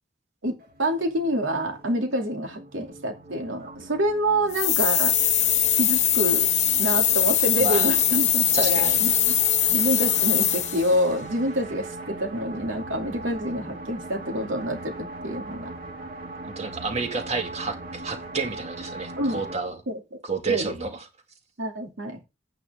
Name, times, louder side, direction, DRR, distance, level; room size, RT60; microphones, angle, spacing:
voice 1, 0.4-5.1 5.7-6.5 6.8-9.4 9.7-15.7 19.2-19.4 19.9-20.0 20.5-20.7 21.6-22.2, equal, 85° right, 2.6 m, -27 dB
sound 1, 0.6-19.5, right 2 dB, 50° right, 2.3 m, -40 dB
sound 2, 4.5-10.9, left 10 dB, 35° left, 1.0 m, -21 dB
voice 2, 7.6-7.9 8.5-9.0 16.6-19.8 20.2-21.1, right 4 dB, 35° right, 2.1 m, -30 dB
9.8 x 8.8 x 3.6 m
head